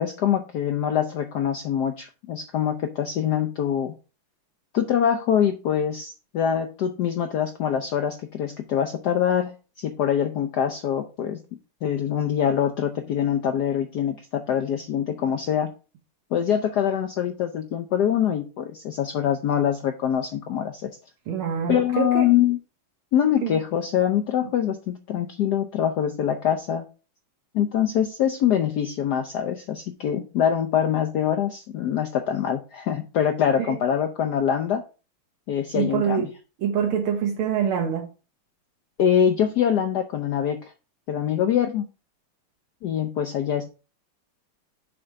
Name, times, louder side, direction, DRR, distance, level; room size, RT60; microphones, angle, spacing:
voice 1, 0.0-3.9 4.7-11.4 11.8-15.7 16.3-20.9 21.7-22.6 23.1-26.8 27.5-34.8 35.5-36.3 39.0-40.7 41.1-41.8 42.8-43.7, left 9 dB, 75° left, 0.9 m, -24 dB
voice 2, 21.3-22.3 23.4-23.6 33.6-33.7 35.7-36.3 36.6-38.1, right 7 dB, 75° right, 1.9 m, -25 dB
6.5 x 3.8 x 5.6 m
omnidirectional pair, 2.4 m